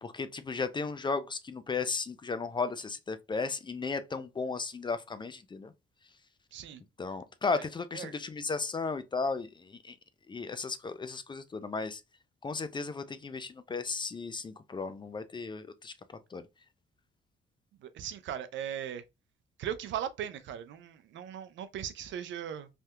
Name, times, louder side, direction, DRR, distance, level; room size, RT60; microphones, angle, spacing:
voice 1, 0.0-5.7 7.0-9.9 10.3-12.0 12.4-15.9 16.3-16.4, left 4 dB, 25° left, 0.4 m, -35 dB
voice 2, 17.8-19.0 19.6-22.7, right 9 dB, 70° right, 0.5 m, -38 dB
3.4 x 2.7 x 2.2 m
cardioid pair, 90°, 20 cm